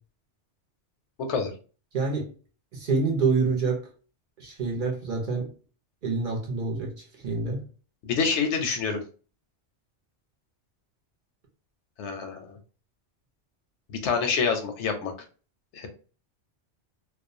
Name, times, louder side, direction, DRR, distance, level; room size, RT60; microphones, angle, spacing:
voice 1, 1.2-1.5 8.0-9.0 12.0-12.6 13.9-15.1 15.7-15.9, left 5 dB, 80° left, 6 dB, 0.9 m, -27 dB
voice 2, 1.9-2.3 2.7-3.8 4.4-5.5 6.0-6.9 7.2-7.6, right 4 dB, 50° right, 0 dB, 0.8 m, -26 dB
2.4 x 2.1 x 2.6 m, 0.37 s
omnidirectional pair, 1.2 m